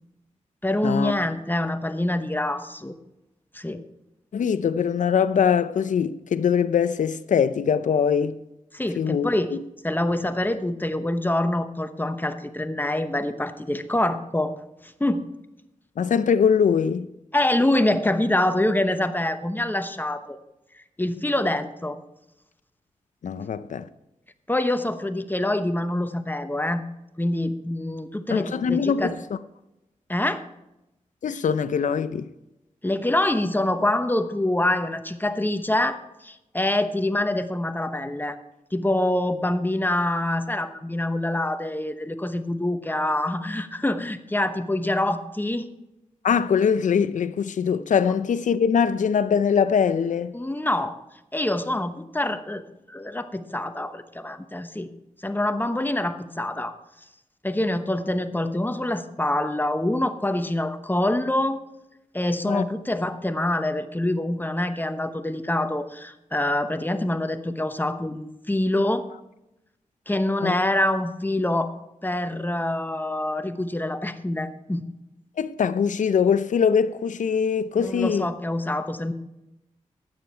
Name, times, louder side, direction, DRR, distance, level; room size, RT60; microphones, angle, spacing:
voice 1, 0.6-2.9 3.5-3.8 8.7-9.6 9.8-14.5 14.8-15.3 17.3-20.4 21.0-22.0 24.5-26.8 27.2-29.1 30.1-30.4 32.8-38.4 38.7-45.7 50.3-51.0 51.3-52.6 52.9-54.9 55.2-56.7 57.4-61.6 62.1-69.1 70.1-71.7 72.0-74.8 77.8-79.1, left 1 dB, 15° left, 1.0 m, -25 dB
voice 2, 4.3-8.4 9.0-9.3 16.0-17.1 23.2-23.9 28.3-29.2 31.2-32.3 46.2-50.3 62.4-62.6 70.4-70.6 75.4-78.3, left 7 dB, 75° left, 0.6 m, -22 dB
12.5 x 8.9 x 4.5 m
cardioid pair, 55°, 13 cm